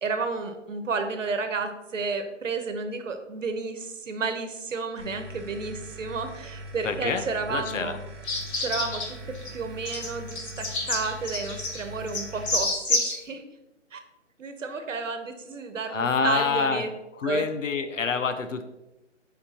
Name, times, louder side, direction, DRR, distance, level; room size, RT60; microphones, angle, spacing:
voice 1, 0.0-8.0 8.6-9.2 9.5-13.4 13.9-14.0 14.4-16.9 17.2-17.5, right 4 dB, 85° right, 8 dB, 1.1 m, -31 dB
sound 1, 5.0-12.5, right 1 dB, 20° right, 0.6 m, -42 dB
voice 2, 6.8-8.0 15.9-16.8 17.2-18.6, left 5 dB, 85° left, 9 dB, 0.9 m, -27 dB
sound 2, 8.2-9.1 9.3-9.5 9.9-13.2, left 2 dB, 60° left, 1.6 m, -28 dB
8.1 x 5.0 x 2.9 m, 1.0 s
hypercardioid pair, 160°, 37 cm